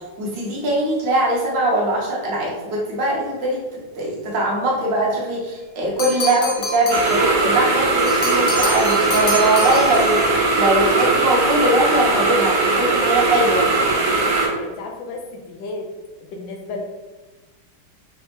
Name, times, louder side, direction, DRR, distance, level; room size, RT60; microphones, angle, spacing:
voice 1, 0.2-13.7, right 1 dB, 65° right, -3 dB, 1.5 m, -21 dB
sound 1, 6.0-7.2 8.0-10.2, left 2 dB, 55° left, 1.0 m, -28 dB
sound 2, 6.9-14.5, right 3 dB, 80° right, 2.0 m, -19 dB
voice 2, 14.1-15.9 16.2-16.8, left 3 dB, 75° left, 2 dB, 1.2 m, -33 dB
5.5 x 2.8 x 2.9 m, 1.2 s
omnidirectional pair, 2.3 m